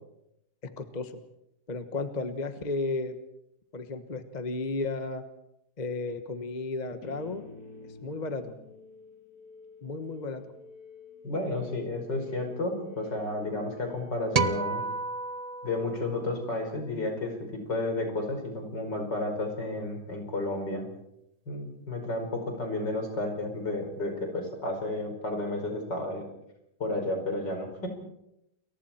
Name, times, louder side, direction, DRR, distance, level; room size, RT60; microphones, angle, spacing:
voice 1, 0.6-1.2 1.7-3.2 3.7-5.2 5.8-7.4 8.0-8.5 9.8-10.5, left 3 dB, 25° left, 8 dB, 1.3 m, -33 dB
sound 1, 7.0-14.9, left 3 dB, 55° left, 3.3 m, -50 dB
voice 2, 11.2-14.8 15.6-20.9 21.5-26.2 26.8-27.9, left 2 dB, 70° left, 3 dB, 5.6 m, -32 dB
sound 2, 14.3-16.8, right 4 dB, 50° right, 0.4 m, -31 dB
29.0 x 23.0 x 4.4 m, 0.82 s
omnidirectional pair, 2.0 m